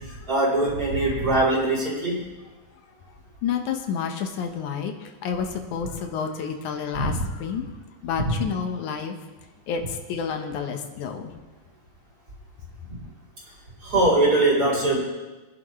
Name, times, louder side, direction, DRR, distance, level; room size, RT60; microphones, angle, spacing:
voice 1, 0.0-2.2 6.9-7.2 8.3-8.4 13.8-15.0, right 2 dB, 30° right, -4 dB, 4.2 m, -22 dB
voice 2, 3.4-7.6 8.0-9.2 9.7-11.3, left 7 dB, 85° left, 5 dB, 2.5 m, -29 dB
24.0 x 11.0 x 3.2 m, 1.2 s
omnidirectional pair, 3.4 m